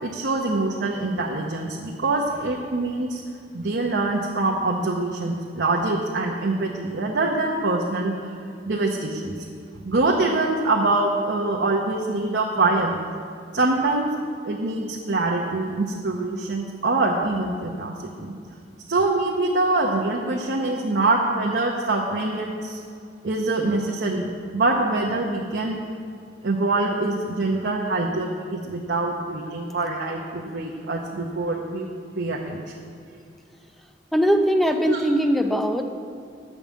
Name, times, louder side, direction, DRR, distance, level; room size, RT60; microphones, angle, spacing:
voice 1, 0.0-3.2 3.5-8.4 8.7-9.3 9.8-13.0 13.5-14.1 14.4-18.3 18.9-22.8 23.2-24.3 24.5-25.8 26.4-31.9 32.2-32.6 34.9-35.0, right 2 dB, 75° right, -1 dB, 0.8 m, -24 dB
voice 2, 34.1-35.8, equal, ahead, 6 dB, 0.5 m, -20 dB
9.0 x 5.3 x 7.3 m, 2.3 s
head